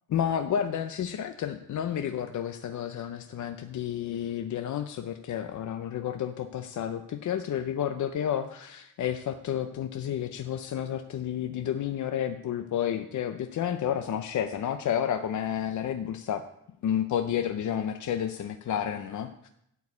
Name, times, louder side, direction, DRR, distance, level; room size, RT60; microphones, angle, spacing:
voice 1, 0.1-16.4 16.8-19.5, left 9 dB, 60° left, 7 dB, 0.7 m, -31 dB
12.0 x 4.7 x 8.4 m, 0.76 s
wide cardioid pair, 140°, 32 cm